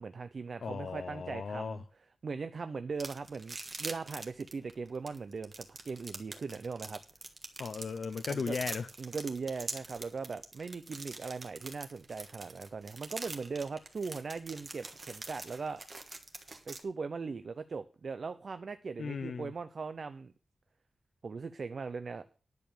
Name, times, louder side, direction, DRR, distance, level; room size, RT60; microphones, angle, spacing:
voice 1, 0.0-1.8 2.2-7.0 8.3-8.6 9.0-15.8 16.7-20.3 21.2-22.3, right 4 dB, 55° right, 0.5 m, -39 dB
voice 2, 0.6-1.8 7.6-8.9 19.0-19.5, left 5 dB, 75° left, 0.6 m, -36 dB
sound 1, 3.0-16.8, right 3 dB, 35° right, 1.4 m, -44 dB
10.5 x 6.8 x 6.8 m
wide cardioid pair, 165°, 0 cm